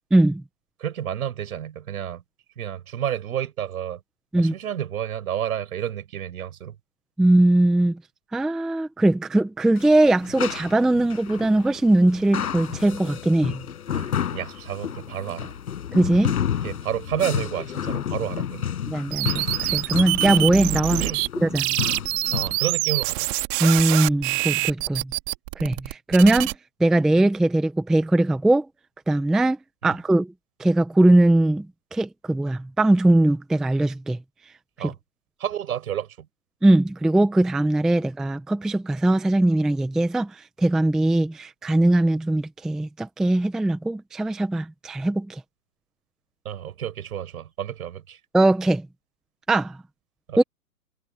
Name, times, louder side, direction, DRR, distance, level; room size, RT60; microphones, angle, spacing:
voice 1, 0.1-0.4 4.3-4.5 7.2-8.0 8.3-13.6 15.9-16.3 18.9-21.0 21.4-21.7 23.6-25.1 25.6-26.5 26.8-28.7 29.1-29.6 29.8-30.3 30.6-31.7 31.9-34.2 34.8-34.9 36.6-45.4 48.3-48.9 49.5-49.8 50.4-50.5, right 1 dB, ahead, 0.6 m, -20 dB
voice 2, 0.8-2.2 2.6-4.0 4.4-6.8 13.9-15.6 16.6-18.6 21.0-21.2 22.3-23.3 29.8-29.9 34.8-34.9 35.4-36.3 46.5-48.2 50.3-50.4, right 10 dB, 65° right, 5.3 m, -30 dB
sound 1, 9.8-22.6, left 9 dB, 65° left, 7.2 m, -31 dB
sound 2, 19.1-21.3 21.5-26.5, right 27 dB, 30° right, 2.2 m, -25 dB
hypercardioid pair, 140°, 47 cm